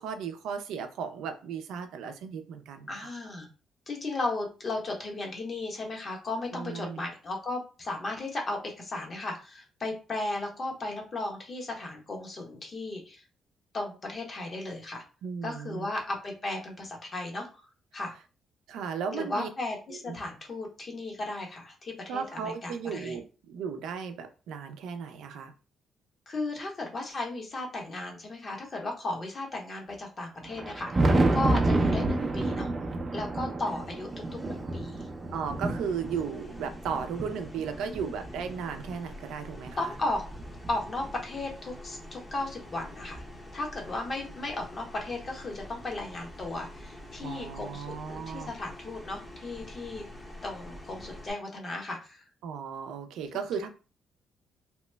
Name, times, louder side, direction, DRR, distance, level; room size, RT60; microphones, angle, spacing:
voice 1, 0.0-3.1 6.5-7.0 15.2-15.9 18.7-19.5 19.9-20.1 22.1-25.5 35.3-39.9 47.2-48.5 52.4-53.7, right 6 dB, 85° right, 7 dB, 0.4 m, -35 dB
voice 2, 2.9-3.5 3.9-13.2 13.7-15.0 15.4-18.1 19.1-23.2 26.3-32.7 33.1-35.1 37.8-38.2 39.8-40.2 40.7-43.2 43.5-50.1 50.4-52.2, left 2 dB, 40° left, 1 dB, 1.0 m, -35 dB
Thunder, 30.4-39.0 39.6-41.4 42.5-42.6 43.2-43.3 45.1-45.2 46.6-46.7 48.3-48.4, right 2 dB, 35° right, 0.5 m, -30 dB
sound 1, 33.7-51.3, left 1 dB, 20° left, 0.8 m, -47 dB
2.9 x 2.1 x 3.3 m, 0.34 s
cardioid pair, 90°, 0 cm